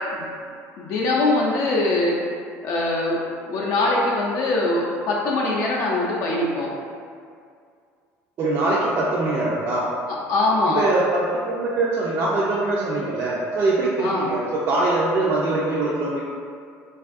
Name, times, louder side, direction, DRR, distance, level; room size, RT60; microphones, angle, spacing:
voice 1, 0.8-2.2 2.6-3.2 3.5-6.7 10.3-10.8 14.0-14.3, left 2 dB, 65° left, -3 dB, 0.4 m, -22 dB
voice 2, 8.4-9.9 10.8-16.3, right 2 dB, 50° right, -6 dB, 0.4 m, -23 dB
2.5 x 2.3 x 2.4 m, 2.2 s
cardioid pair, 110°, 6 cm